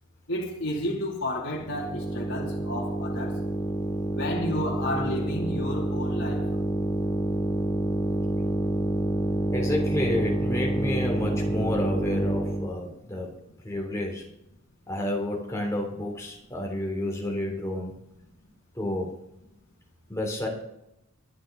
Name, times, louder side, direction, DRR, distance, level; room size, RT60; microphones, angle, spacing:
voice 1, 0.3-3.4 4.1-6.5, left 1 dB, 65° left, -4 dB, 2.7 m, -31 dB
sound 1, 1.6-12.7, right 1 dB, 30° left, 2.2 m, -28 dB
voice 2, 9.5-13.3 13.6-14.2 14.9-17.9 18.7-19.1 20.1-20.5, left 1 dB, 15° left, -1 dB, 3.1 m, -30 dB
23.0 x 8.7 x 3.9 m, 0.85 s
head